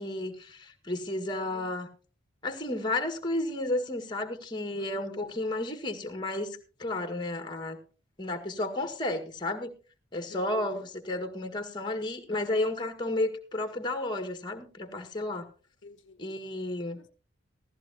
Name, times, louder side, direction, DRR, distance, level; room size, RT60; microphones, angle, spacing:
voice 1, 0.0-1.9 2.4-7.8 8.2-9.7 10.1-15.5 16.2-17.0, left 1 dB, 20° left, 1.8 m, -32 dB
voice 2, 1.4-1.7 4.8-5.4 10.3-10.8 15.8-16.2 17.0-17.1, left 3 dB, 65° left, 0.9 m, -48 dB
15.5 x 14.5 x 2.9 m
head